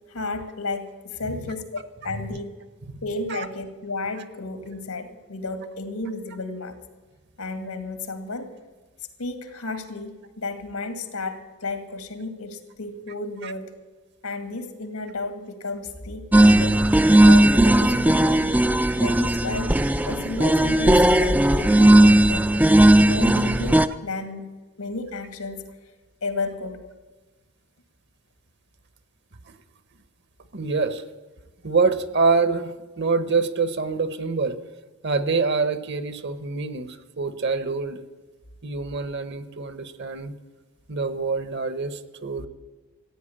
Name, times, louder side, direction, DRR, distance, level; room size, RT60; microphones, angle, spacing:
voice 1, 0.1-2.5 3.0-6.8 7.4-8.5 9.2-13.7 14.2-16.8 17.2-18.5 19.0-19.7 20.1-22.5 23.0-25.7 26.2-26.8, left 3 dB, 85° left, 8 dB, 2.1 m, -32 dB
voice 2, 1.2-1.5 3.3-3.5 13.4-13.5 21.1-21.2 29.5-29.6 30.5-31.0 31.6-34.6 35.0-38.0 38.6-40.4 40.9-42.5, right 4 dB, 50° right, 13 dB, 1.0 m, -25 dB
sound 1, 16.3-23.9, right 1 dB, 5° right, 0.4 m, -16 dB
15.0 x 9.4 x 8.6 m, 1.3 s
head